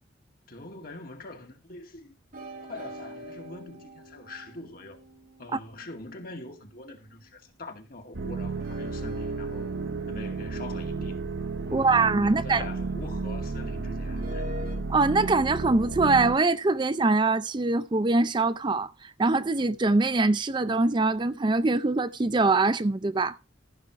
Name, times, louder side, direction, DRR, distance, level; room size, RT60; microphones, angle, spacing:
voice 1, 0.5-2.2 2.7-5.0 5.4-9.8 10.0-11.2 11.6-12.0 12.2-14.6, left 2 dB, 50° left, 2.2 m, -43 dB
sound 1, 2.3-6.9 8.5-12.7 14.0-14.7, left 1 dB, 50° right, 4.2 m, -44 dB
sound 2, 8.1-16.4, right 4 dB, 85° right, 1.0 m, -33 dB
voice 2, 11.7-12.6 14.9-23.4, right 3 dB, 25° right, 0.4 m, -23 dB
14.5 x 5.8 x 4.6 m
head